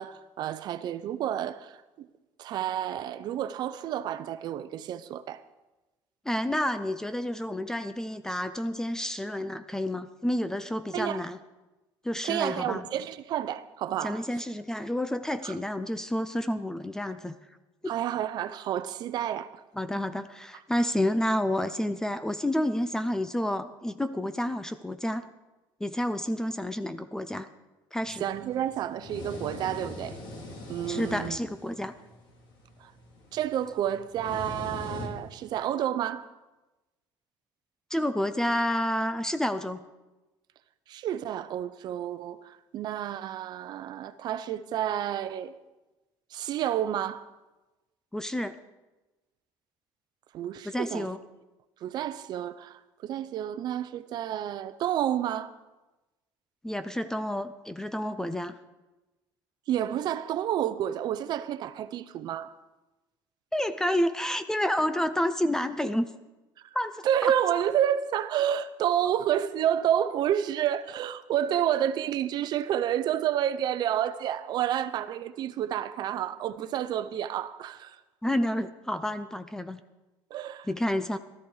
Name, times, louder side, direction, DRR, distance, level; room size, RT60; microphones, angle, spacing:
voice 1, 0.0-2.1 2.4-5.4 10.9-11.2 12.2-14.2 15.4-15.5 17.9-19.6 28.2-30.2 30.7-31.4 32.8-32.9 33.3-36.3 40.9-45.6 46.3-47.3 50.3-51.1 51.8-55.5 59.7-62.5 67.0-78.0 80.3-80.7, right 10 dB, 55° right, 0.7 m, -30 dB
voice 2, 6.3-11.4 12.0-12.9 14.0-17.4 19.8-25.2 25.8-27.5 27.9-28.2 30.9-31.9 37.9-39.8 48.1-48.6 50.7-51.2 56.6-58.6 63.5-66.1 66.7-67.3 78.2-79.8 80.7-81.2, left 1 dB, 5° left, 0.5 m, -29 dB
sound 1, 28.0-35.5, left 2 dB, 60° left, 2.7 m, -43 dB
13.5 x 13.5 x 4.8 m
cardioid pair, 135°, 9 cm